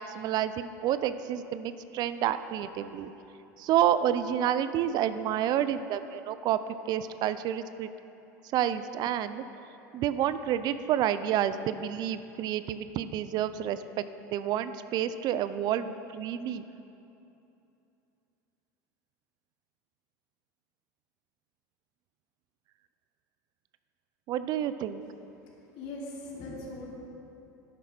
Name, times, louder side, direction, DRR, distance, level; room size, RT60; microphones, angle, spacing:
voice 1, 0.0-3.1 3.6-6.6 6.9-7.9 8.5-9.4 9.9-14.0 14.3-16.6 24.3-25.0, right 10 dB, 50° right, 12 dB, 0.4 m, -29 dB
voice 2, 25.6-26.9, left 2 dB, 55° left, -3 dB, 2.7 m, -40 dB
11.5 x 9.9 x 4.4 m, 2.9 s
hypercardioid pair, 85°, 9 cm